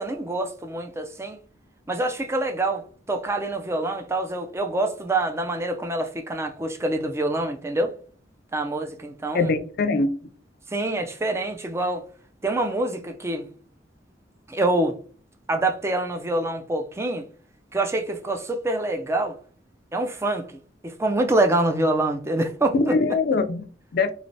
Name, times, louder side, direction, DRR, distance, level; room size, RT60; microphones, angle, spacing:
voice 1, 0.0-1.4 1.9-7.9 8.5-9.5 10.7-12.1 12.4-13.5 14.5-15.0 15.5-17.3 17.7-19.4 19.9-22.9, right 2 dB, 15° right, 0.4 m, -26 dB
voice 2, 9.3-10.1 22.7-24.1, left 3 dB, 55° left, 0.4 m, -23 dB
3.2 x 3.0 x 2.6 m
head